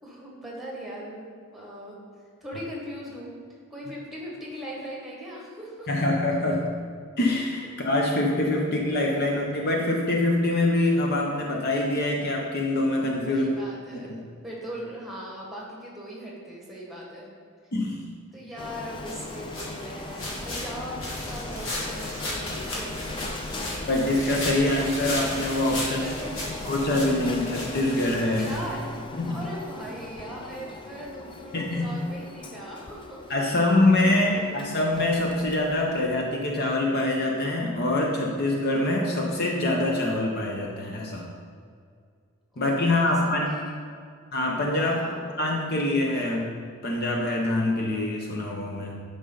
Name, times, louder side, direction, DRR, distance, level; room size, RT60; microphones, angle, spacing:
voice 1, 0.0-2.0 2.4-3.3 3.7-6.1 13.2-17.3 18.3-23.9 25.8-26.7 28.3-28.9 29.2-34.7 42.5-43.9 44.8-45.2, equal, ahead, -4 dB, 1.6 m, -40 dB
voice 2, 5.9-6.8 7.2-13.6 14.1-14.3 17.7-18.0 23.9-26.0 26.6-28.5 29.2-29.4 31.5-32.0 33.3-41.3 42.6-43.5 44.3-45.0 45.4-49.0, left 1 dB, 45° left, 0 dB, 0.8 m, -25 dB
Printer, 18.6-36.2, left 2 dB, 25° left, 0.4 m, -39 dB
sound 1, 19.0-29.1, left 1 dB, 65° left, 1.8 m, -35 dB
9.7 x 5.5 x 3.9 m, 2.2 s
head